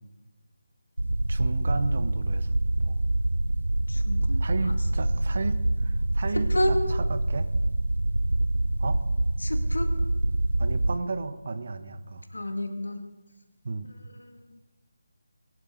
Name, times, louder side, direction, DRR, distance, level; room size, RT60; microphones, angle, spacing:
sound 1, 1.0-11.0, right 1 dB, 85° right, 0.4 m, -26 dB
voice 1, 1.3-2.5 2.8-3.0 4.4-5.5 5.8-7.5 8.8-9.0 10.6-12.2 13.6-13.9, right 3 dB, 50° right, 10 dB, 1.2 m, -33 dB
voice 2, 3.9-4.4 6.3-6.8 9.4-9.9 12.3-13.0, left 1 dB, 80° left, 6 dB, 2.1 m, -29 dB
22.0 x 12.0 x 3.9 m, 1.1 s
figure-of-eight pair, 160°, 0 cm